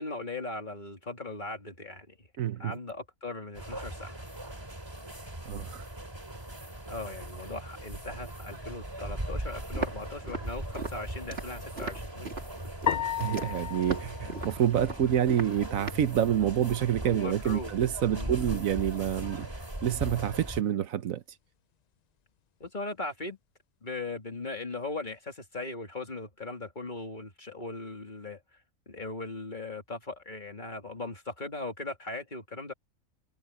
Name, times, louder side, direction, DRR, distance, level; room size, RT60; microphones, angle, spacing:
voice 1, 0.0-2.3 2.6-4.2 6.9-12.3 15.0-15.1 17.0-17.7 18.1-18.6 22.6-23.4 23.8-28.4 28.9-32.7, left 2 dB, 35° left, 2.7 m, -39 dB
voice 2, 2.4-2.7 5.5-5.8 13.2-19.5 19.8-21.2, right 10 dB, 80° right, 1.2 m, -27 dB
sound 1, 3.6-20.6, right 1 dB, 20° right, 3.3 m, -39 dB
Walk footsteps, 9.7-16.1, right 4 dB, 45° right, 2.6 m, -39 dB
sound 2, 12.9-15.3, left 9 dB, 85° left, 0.3 m, -34 dB
omnidirectional pair, 1.4 m